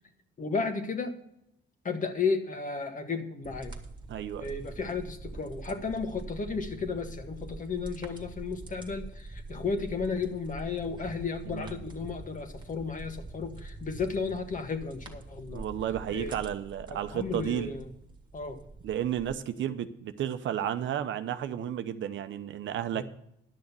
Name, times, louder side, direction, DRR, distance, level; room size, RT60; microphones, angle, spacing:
voice 1, 0.4-1.1 1.8-3.7 4.4-15.7 16.1-16.3 16.9-17.9 18.3-18.6 22.9-23.1, left 4 dB, 40° left, 7 dB, 1.6 m, -33 dB
sound 1, 3.4-19.3, right 2 dB, 25° right, 1.8 m, -45 dB
voice 2, 4.1-4.5 11.4-11.8 15.5-17.7 18.8-23.1, right 10 dB, 75° right, 10 dB, 0.8 m, -32 dB
11.5 x 6.5 x 7.0 m, 0.78 s
cardioid pair, 90°, 20 cm